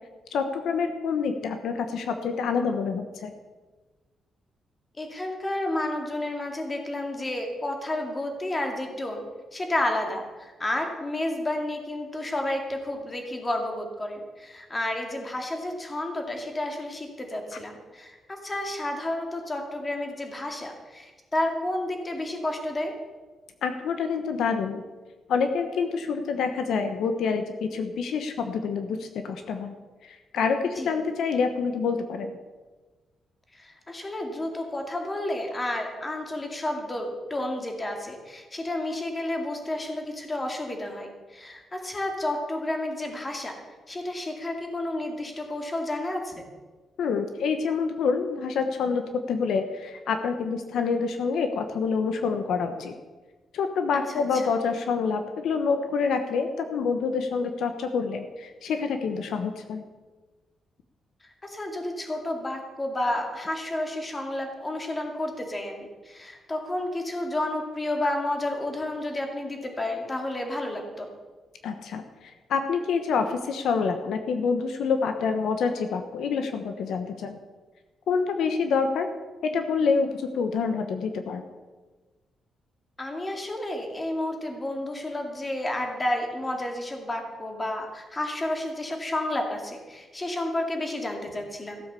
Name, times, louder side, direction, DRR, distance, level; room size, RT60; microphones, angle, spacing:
voice 1, 0.3-3.3 23.6-24.8 25.3-29.7 30.0-32.4 47.0-52.9 53.5-59.8 71.6-72.0 72.5-77.4 78.1-79.1 79.5-81.4, left 5 dB, 75° left, 7 dB, 1.1 m, -27 dB
voice 2, 5.0-9.2 9.5-22.9 30.6-31.0 33.5-43.5 43.9-46.4 54.1-54.5 61.4-71.1 83.0-91.8, left 1 dB, 20° left, 3 dB, 2.3 m, -31 dB
15.0 x 8.0 x 6.9 m, 1.3 s
cardioid pair, 130°, 0 cm